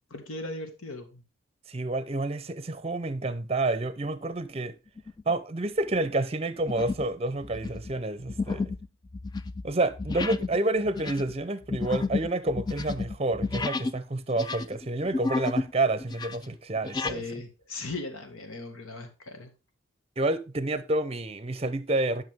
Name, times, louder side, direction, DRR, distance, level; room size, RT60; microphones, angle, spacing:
voice 1, 0.1-1.2 16.9-19.5, left 2 dB, 85° left, 1.9 m, -38 dB
voice 2, 1.7-4.8 5.3-8.7 9.6-17.4 20.2-22.2, right 2 dB, 30° right, 0.6 m, -29 dB
sound 1, 5.0-5.3 5.8-6.1 6.7-7.1 7.4-14.0 14.3-15.7 16.0-17.2, left 3 dB, 20° left, 0.3 m, -32 dB
11.0 x 5.9 x 3.6 m
head